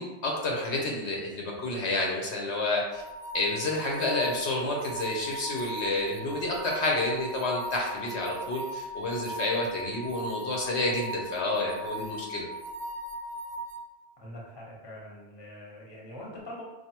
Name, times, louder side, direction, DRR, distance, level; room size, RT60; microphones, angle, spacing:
voice 1, 0.0-3.0 3.3-12.5, left 2 dB, 70° left, -1 dB, 1.0 m, -29 dB
sound 1, 2.9-13.8, equal, 75° right, 0.9 m, -38 dB
voice 2, 14.2-16.6, left 1 dB, 25° left, -4 dB, 0.9 m, -43 dB
4.7 x 2.6 x 2.9 m, 1.0 s
omnidirectional pair, 1.2 m